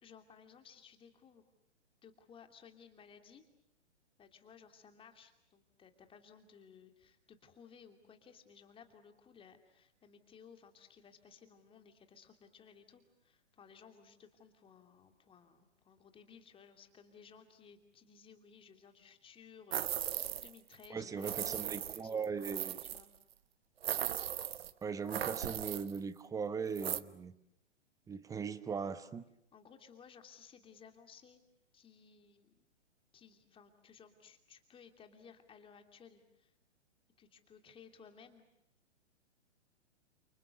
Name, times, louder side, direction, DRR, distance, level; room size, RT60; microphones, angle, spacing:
voice 1, 0.0-1.5 2.0-3.4 4.2-22.3 22.8-23.1 24.5-24.6 29.5-31.4 31.7-32.7 33.1-36.5 37.2-38.4, left 6 dB, 15° left, 6 dB, 2.8 m, -59 dB
sound 1, 19.7-20.6 20.8-20.9 21.2-23.0 23.8-24.7 25.1-26.0 26.7-27.0, right 10 dB, 55° right, 1.2 m, -37 dB
voice 2, 20.9-22.8 24.8-27.3 28.1-29.2, right 6 dB, 10° right, 14 dB, 1.0 m, -39 dB
30.0 x 28.5 x 6.6 m, 0.81 s
figure-of-eight pair, 120°, 36 cm